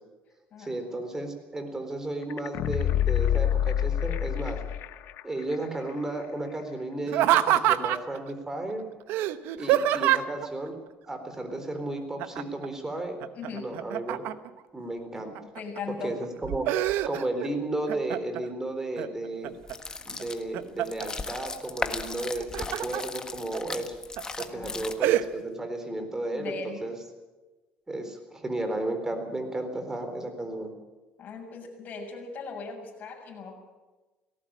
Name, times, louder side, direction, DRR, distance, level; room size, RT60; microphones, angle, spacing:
voice 1, 0.6-4.6 5.2-8.8 9.5-10.8 11.1-13.2 13.5-14.3 14.7-15.4 16.0-16.7 17.1-19.5 20.0-24.0 24.4-27.0 27.9-30.7, right 2 dB, 15° right, 6 dB, 4.0 m, -33 dB
sound 1, 2.3-5.2 5.5-5.6, left 11 dB, 70° left, 0.9 m, -26 dB
Laughter, 7.1-8.2 9.1-10.5 12.2-12.7 13.0-14.6 15.2-15.8 16.2-17.5 17.9-18.5 19.0-19.7 20.2-21.1 22.2-23.0 23.5-23.6 24.2-24.4 25.0-25.2, right 13 dB, 80° right, 1.0 m, -26 dB
voice 2, 13.3-13.7 15.5-16.2 24.5-24.8 26.3-26.8 31.2-33.5, left 4 dB, 45° left, 1 dB, 6.7 m, -39 dB
sound 2, 19.6-25.3, left 3 dB, 20° left, 1.5 m, -37 dB
19.0 x 17.5 x 8.9 m, 1.2 s
cardioid pair, 120°, 4 cm